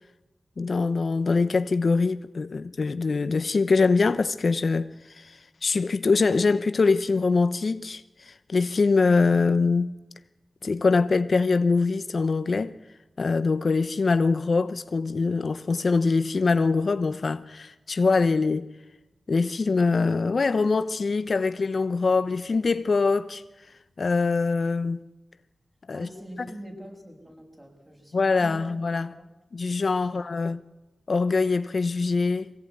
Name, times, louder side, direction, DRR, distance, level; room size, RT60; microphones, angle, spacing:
voice 1, 0.6-4.9 5.1-9.9 10.6-12.7 13.2-18.6 19.3-23.4 24.0-25.0 25.9-26.1 28.1-29.1 29.5-30.6 31.1-32.5, left 4 dB, 65° left, 0.9 m, -23 dB
voice 2, 25.9-29.3 30.0-30.3, right 1 dB, 20° right, 7.6 m, -44 dB
23.5 x 17.0 x 9.6 m
cardioid pair, 60°, 0 cm